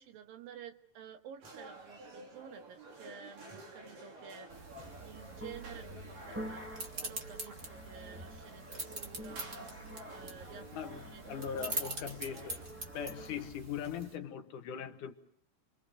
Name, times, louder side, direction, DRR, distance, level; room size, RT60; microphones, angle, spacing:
voice 1, 0.0-6.8 7.0-11.5 11.7-11.9, right 8 dB, 90° right, 3.4 m, -52 dB
sound 1, 1.4-12.6, right 1 dB, 70° right, 5.1 m, -52 dB
sound 2, 4.5-14.2, right 2 dB, 25° right, 2.0 m, -44 dB
sound 3, 5.1-13.6, equal, 5° right, 1.4 m, -49 dB
voice 2, 10.7-12.6 12.9-15.1, left 8 dB, 70° left, 2.7 m, -40 dB
29.5 x 24.5 x 6.4 m
omnidirectional pair, 3.9 m